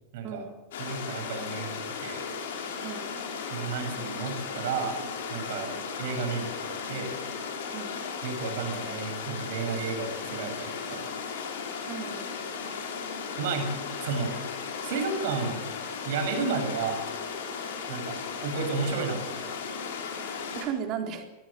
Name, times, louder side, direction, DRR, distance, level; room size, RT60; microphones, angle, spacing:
voice 1, 0.1-0.4 0.8-2.3 3.5-5.0 5.3-7.1 8.2-11.1 13.4-14.4 14.8-15.6 16.0-17.0 17.9-19.6, right 5 dB, 50° right, 6 dB, 7.7 m, -32 dB
sound 1, 0.7-20.7, left 5 dB, 55° left, 6.4 m, -36 dB
voice 2, 2.8-3.2 5.5-5.7 7.7-8.0 11.9-12.3 20.5-21.2, right 8 dB, 35° right, 4 dB, 3.9 m, -35 dB
25.5 x 19.5 x 8.6 m, 1.0 s
figure-of-eight pair, 90°, 0 cm